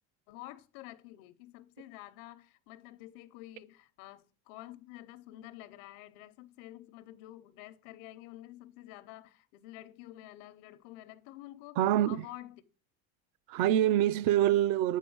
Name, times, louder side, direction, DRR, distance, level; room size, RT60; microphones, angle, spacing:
voice 1, 0.3-11.8 12.1-12.6, left 15 dB, 90° left, 0.8 m, -49 dB
voice 2, 11.8-12.2 13.5-15.0, right 12 dB, 60° right, 0.5 m, -25 dB
8.3 x 4.3 x 6.1 m
cardioid pair, 170°, 37 cm